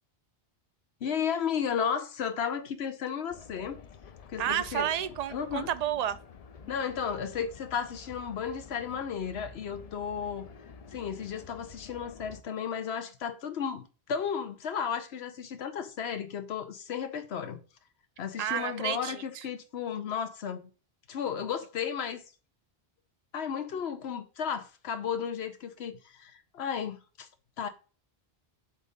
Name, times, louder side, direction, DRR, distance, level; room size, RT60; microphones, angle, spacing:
voice 1, 1.0-3.8 4.3-4.9 5.3-5.7 6.7-10.5 10.9-17.6 18.2-20.7 21.1-22.2 23.3-27.3 27.6-27.7, left 7 dB, 85° left, 1.0 m, -34 dB
sound 1, 3.3-12.4, left 6 dB, 50° left, 0.5 m, -50 dB
voice 2, 4.4-6.2 18.4-19.5, right 10 dB, 55° right, 0.5 m, -31 dB
5.8 x 3.7 x 5.2 m
omnidirectional pair, 1.1 m